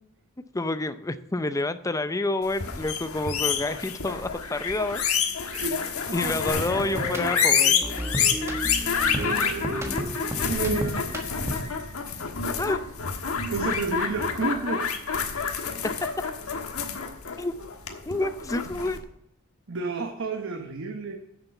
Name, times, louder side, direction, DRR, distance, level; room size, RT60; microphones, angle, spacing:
voice 1, 0.5-5.0 6.1-7.8 12.6-12.8 16.1-16.2 17.4-17.5 18.1-19.0, left 2 dB, 15° left, 11 dB, 0.5 m, -28 dB
sound 1, 2.5-19.0, left 6 dB, 75° left, 1.4 m, -28 dB
sound 2, 6.5-11.8, equal, 10° right, 1.4 m, -33 dB
voice 2, 9.2-10.1 10.5-11.1 13.5-14.9 19.7-21.2, right 4 dB, 60° right, 4 dB, 1.0 m, -31 dB
10.0 x 6.8 x 7.1 m, 0.78 s
head